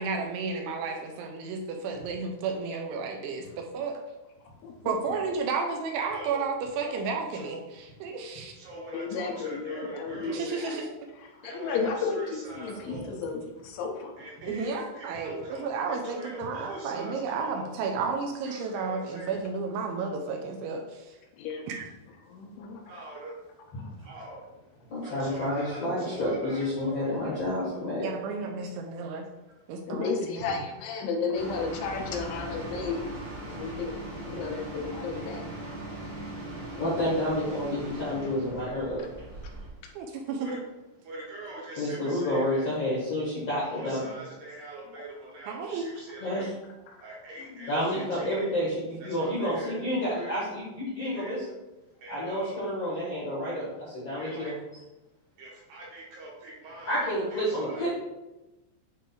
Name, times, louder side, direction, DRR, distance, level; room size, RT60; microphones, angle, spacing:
voice 1, 0.0-4.0 4.9-7.6 8.0-8.5 10.3-10.9 14.4-20.8 21.7-21.8 28.0-29.2 29.7-30.5 40.0-40.5 45.5-45.9, right 4 dB, 80° right, 3 dB, 2.9 m, -32 dB
voice 2, 4.6-5.2 8.9-10.8 11.3-14.1 14.8-14.9 21.4-21.8 22.3-22.8 23.8-23.9 29.9-33.0 33.4-34.0 34.3-36.7 47.4-47.7 52.1-52.2, left 4 dB, 80° left, 2 dB, 3.1 m, -33 dB
voice 3, 6.1-7.6 8.6-10.8 11.4-13.0 14.2-17.7 18.4-19.4 22.9-23.3 24.1-24.4 25.0-27.0 40.4-40.6 41.1-42.7 43.6-46.5 47.0-48.4 49.0-49.8 50.1-50.3 51.2-51.4 52.0-52.6 54.2-54.5 55.4-57.9, right 2 dB, 65° right, -4 dB, 3.0 m, -43 dB
voice 4, 24.9-28.1 36.8-39.0 41.8-44.0 46.2-46.5 47.7-51.4 52.1-54.5 56.9-57.9, left 1 dB, 60° left, -8 dB, 1.6 m, -29 dB
sound 1, 31.3-39.7, right 1 dB, 45° right, 1.5 m, -39 dB
8.9 x 3.3 x 3.8 m, 1.0 s
omnidirectional pair, 5.6 m